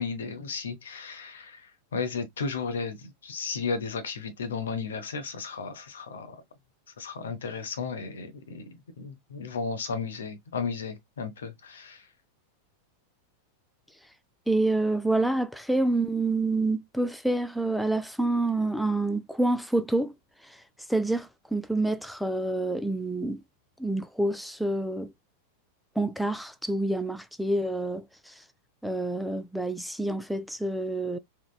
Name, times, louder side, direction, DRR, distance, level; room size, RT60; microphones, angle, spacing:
voice 1, 0.0-1.7 1.9-6.4 7.0-12.0, left 5 dB, 65° left, 0.7 m, -34 dB
voice 2, 14.5-20.1 20.9-23.4 23.8-25.1 26.0-28.3 28.8-31.2, right 2 dB, ahead, 0.3 m, -27 dB
3.7 x 2.2 x 2.3 m
figure-of-eight pair, 90°, 0 cm